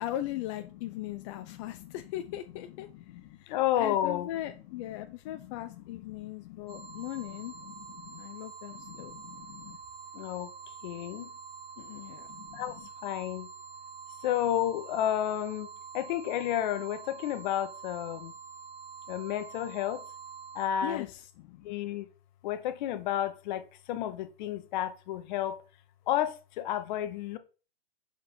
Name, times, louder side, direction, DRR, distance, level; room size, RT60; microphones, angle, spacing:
voice 1, 0.0-2.9 3.4-7.5 8.2-9.1 11.8-12.3 20.8-21.3, left 13 dB, 30° left, 0.4 m, -38 dB
voice 2, 1.4-1.9 2.9-4.3 4.9-5.0 5.3-5.6 6.1-7.3 7.7-8.2 8.7-9.8 10.1-10.5 10.8-11.3 12.3-13.5 14.2-15.7 15.9-18.3 19.1-20.0 20.5-21.1 21.5-22.1 22.4-25.6 26.1-27.4, left 11 dB, 45° left, 0.8 m, -32 dB
sound 1, 6.7-20.7, right 6 dB, 25° right, 1.1 m, -46 dB
5.3 x 4.4 x 4.2 m
hypercardioid pair, 115°, 32 cm